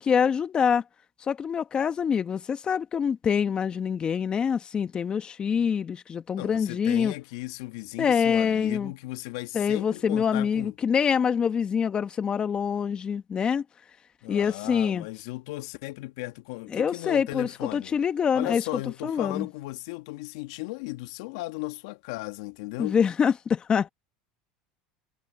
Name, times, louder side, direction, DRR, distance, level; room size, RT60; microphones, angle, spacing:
voice 1, 0.0-0.8 1.2-7.1 8.0-8.9 9.5-13.6 14.3-15.0 16.7-18.6 19.0-19.5 22.8-23.9, left 7 dB, 30° left, 1.4 m, -25 dB
voice 2, 6.4-10.7 14.2-17.9 18.3-23.0, left 21 dB, 75° left, 1.7 m, -36 dB
hypercardioid pair, 90°, 3 cm